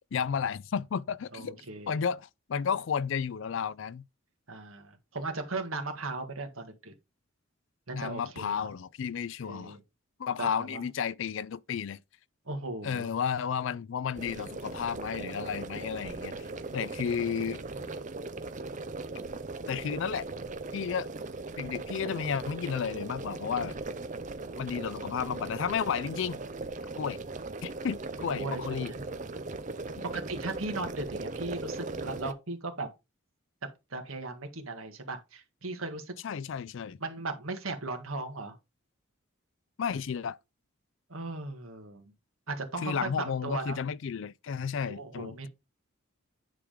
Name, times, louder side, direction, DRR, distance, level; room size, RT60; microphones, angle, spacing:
voice 1, 0.1-1.6 1.9-4.1 7.9-9.8 10.2-12.0 12.8-16.3 16.7-17.6 19.7-20.3 20.7-21.1 21.6-23.8 24.6-26.4 27.0-27.2 27.6-28.9 36.2-37.0 39.8-40.4 42.8-45.5, left 7 dB, 60° left, 0.4 m, -32 dB
voice 2, 1.3-2.0 4.5-6.9 7.9-8.7 9.4-9.8 10.4-10.8 12.5-13.1 18.0-18.2 28.4-29.1 30.1-32.9 33.9-36.1 37.0-38.5 41.1-42.1 42.5-43.8 44.8-45.5, right 3 dB, 75° right, 1.7 m, -37 dB
sound 1, 14.1-32.3, right 3 dB, 35° right, 0.6 m, -39 dB
9.9 x 3.6 x 5.0 m
head